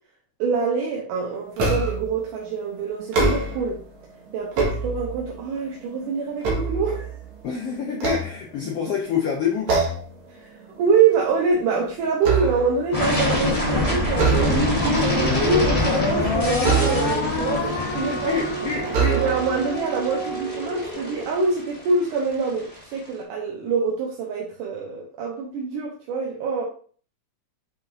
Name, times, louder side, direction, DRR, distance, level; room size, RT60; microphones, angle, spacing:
voice 1, 0.4-3.8 4.3-7.1 10.8-18.5 19.2-26.7, right 4 dB, 85° right, -2 dB, 2.6 m, -25 dB
sound 1, 1.6-2.1 3.0-3.8 4.3-5.4 5.9-7.4 7.9-8.9 9.7-10.2 10.6-10.8 11.2-12.9 14.1-14.9 16.6-17.4 18.2-18.3 18.9-19.7, right 4 dB, 65° right, 2.8 m, -24 dB
voice 2, 7.4-9.8 17.6-17.7 18.0-19.2 19.8-19.9, left 7 dB, 65° left, 0 dB, 1.7 m, -27 dB
sound 2, 12.9-22.7, left 1 dB, 25° left, 0.7 m, -26 dB
sound 3, 14.8-21.2, left 2 dB, 90° left, 3.0 m, -29 dB
7.7 x 5.6 x 2.6 m, 0.43 s
omnidirectional pair, 3.6 m